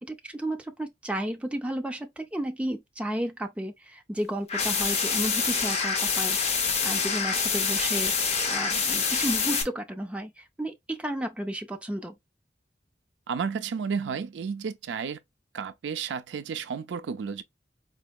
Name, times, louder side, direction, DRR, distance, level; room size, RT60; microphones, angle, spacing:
voice 1, 0.0-12.2, right 1 dB, 5° right, 0.4 m, -33 dB
sound 1, 4.5-9.6, left 5 dB, 35° left, 0.7 m, -26 dB
voice 2, 13.3-15.2 15.5-17.4, right 6 dB, 80° right, 0.4 m, -32 dB
4.3 x 2.8 x 2.3 m
head